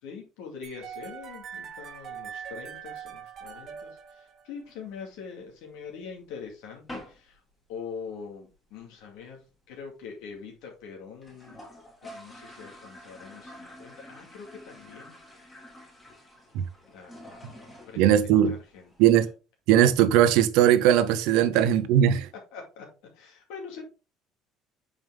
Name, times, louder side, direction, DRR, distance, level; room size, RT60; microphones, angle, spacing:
voice 1, 0.0-7.4 7.7-11.6 12.1-15.1 16.9-19.3 21.5-21.7 22.5-22.9 23.1-23.8, left 6 dB, 80° left, 2.3 m, -43 dB
sound 1, 0.6-4.7, right 8 dB, 35° right, 1.0 m, -42 dB
sound 2, 4.7-5.7 6.1-6.2 6.4-6.6 6.9-7.3 7.6-7.7 8.0-8.1 8.3-8.8 9.2-9.3 9.4-9.5 9.8-9.9 10.4-10.5 10.7-10.8 11.1-19.3, left 1 dB, 10° left, 2.1 m, -48 dB
voice 2, 18.0-18.5 19.0-19.3 19.7-22.3, right 10 dB, 75° right, 0.8 m, -19 dB
7.2 x 5.2 x 3.5 m
cardioid pair, 165°, 0 cm